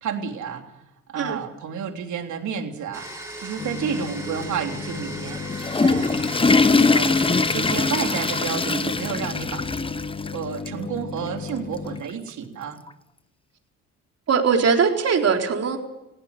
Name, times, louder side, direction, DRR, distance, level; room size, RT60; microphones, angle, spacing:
voice 1, 0.0-0.7 1.1-6.2 6.7-9.7 10.3-12.8, right 7 dB, 75° right, 4 dB, 3.4 m, -31 dB
Domestic sounds home sounds, 2.9-9.6, right 1 dB, 10° right, 5.8 m, -38 dB
sound 1, 3.6-12.0, left 5 dB, 35° left, 1.4 m, -35 dB
Water / Toilet flush, 5.3-10.3 10.7-10.8 11.5-11.6 12.9-13.0, left 3 dB, 20° left, 0.9 m, -22 dB
voice 2, 14.3-15.8, right 6 dB, 55° right, 2 dB, 3.9 m, -20 dB
19.0 x 16.5 x 9.6 m, 0.93 s
cardioid pair, 90°, 30 cm